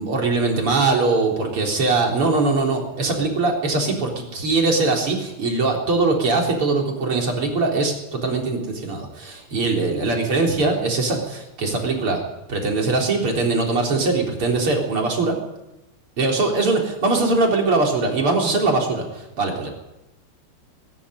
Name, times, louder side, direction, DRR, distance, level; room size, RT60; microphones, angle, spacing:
voice 1, 0.0-12.2 12.5-15.3 16.2-19.7, right 3 dB, 80° right, 1 dB, 4.7 m, -21 dB
20.5 x 13.5 x 10.0 m, 0.97 s
omnidirectional pair, 2.4 m